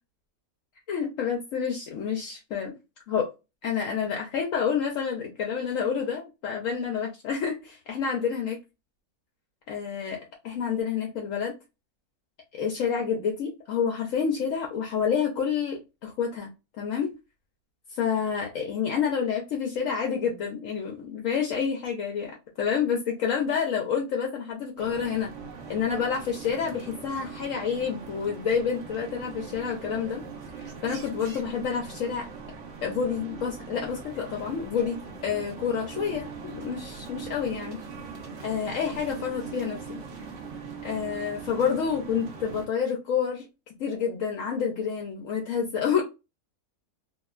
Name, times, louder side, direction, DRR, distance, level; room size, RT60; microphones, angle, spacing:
voice 1, 0.9-2.7 3.1-3.3 3.6-8.6 9.7-11.5 12.5-17.1 17.9-25.3 25.7-30.2 30.6-32.3 32.8-37.8 38.4-40.0 40.8-43.5 43.8-46.0, left 7 dB, 70° left, 0.9 m, -28 dB
sound 1, 24.8-42.7, right 5 dB, 55° right, 0.9 m, -41 dB
2.9 x 2.2 x 2.3 m
omnidirectional pair, 1.6 m